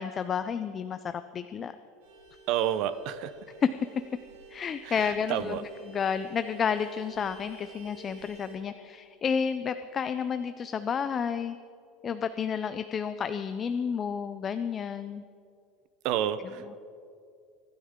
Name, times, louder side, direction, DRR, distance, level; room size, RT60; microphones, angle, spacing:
voice 1, 0.0-1.8 3.6-3.7 4.5-11.6 12.0-15.2, left 7 dB, 25° left, 11 dB, 0.4 m, -31 dB
Vehicle horn car horn honking, 2.0-8.6, right 3 dB, 90° right, 4.7 m, -50 dB
voice 2, 2.5-3.3 4.8-5.6 16.0-16.8, right 10 dB, 50° right, 13 dB, 0.7 m, -30 dB
25.0 x 12.5 x 3.7 m, 2.4 s
cardioid pair, 165°, 0 cm